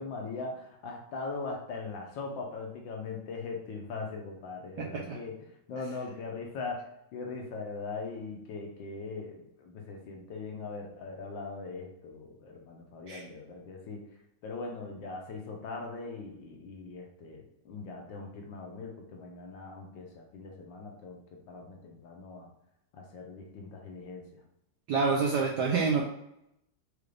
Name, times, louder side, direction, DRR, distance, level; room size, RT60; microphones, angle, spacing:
voice 1, 0.0-14.0 14.4-21.2 21.5-22.5 22.9-24.4, left 4 dB, 70° left, 1 dB, 1.4 m, -40 dB
voice 2, 4.8-5.2 13.1-13.2 24.9-26.0, right 4 dB, 75° right, -2 dB, 0.9 m, -27 dB
5.0 x 2.5 x 3.2 m, 0.80 s
omnidirectional pair, 2.3 m